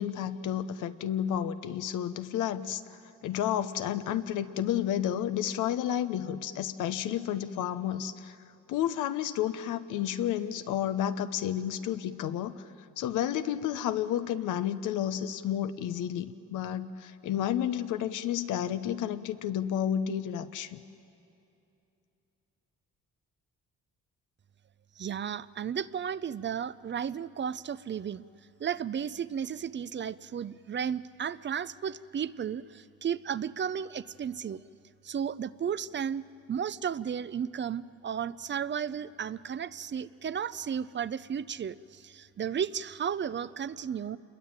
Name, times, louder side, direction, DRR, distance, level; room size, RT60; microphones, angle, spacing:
voice 1, 0.0-8.4 8.7-12.6 13.0-20.8, left 10 dB, 90° left, 11 dB, 1.0 m, -31 dB
voice 2, 25.0-28.2 28.6-34.6 35.0-36.2 36.5-44.2, right 8 dB, 40° right, 16 dB, 0.6 m, -34 dB
28.0 x 22.0 x 8.9 m, 2.7 s
cardioid pair, 90°, 30 cm